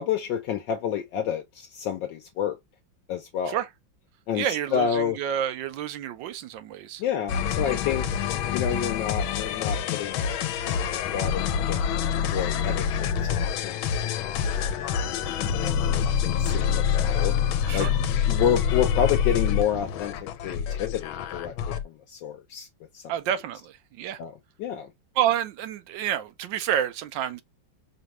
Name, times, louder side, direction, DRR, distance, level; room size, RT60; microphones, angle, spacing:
voice 1, 0.0-2.6 3.1-3.6 4.3-4.5 4.7-5.2 7.0-8.1 8.5-10.3 10.6-13.3 13.6-13.8 14.2-14.7 15.4-17.3 17.7-17.9 18.3-20.1 20.4-22.7 22.9-23.0 24.2-24.3 24.6-24.9, left 8 dB, 70° left, 1.3 m, -29 dB
voice 2, 4.3-7.0 17.7-17.9 23.1-24.2 25.2-27.4, right 10 dB, 75° right, 1.3 m, -29 dB
sound 1, 7.3-21.8, left 8 dB, 90° left, 1.4 m, -26 dB
5.2 x 2.3 x 3.0 m
omnidirectional pair, 2.2 m